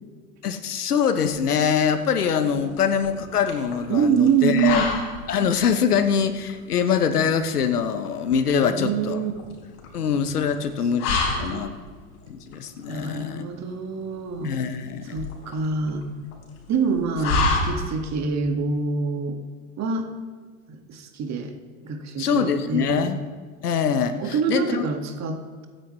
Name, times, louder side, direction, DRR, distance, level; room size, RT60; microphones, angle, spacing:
voice 1, 0.4-4.9 5.3-9.2 9.9-11.7 12.3-13.5 14.4-15.2 22.2-23.2 23.6-24.8, left 7 dB, 85° left, 10 dB, 1.1 m, -24 dB
sound 1, 1.3-18.2, left 3 dB, 60° left, 3.9 m, -31 dB
voice 2, 3.9-4.8 8.5-9.3 11.2-11.6 12.9-14.6 15.1-16.1 16.7-19.4 19.8-20.1 20.7-21.5 21.8-23.1 24.2-25.7, right 5 dB, 35° right, 4 dB, 2.0 m, -25 dB
23.5 x 9.5 x 3.2 m, 1.5 s
hypercardioid pair, 85°, 44 cm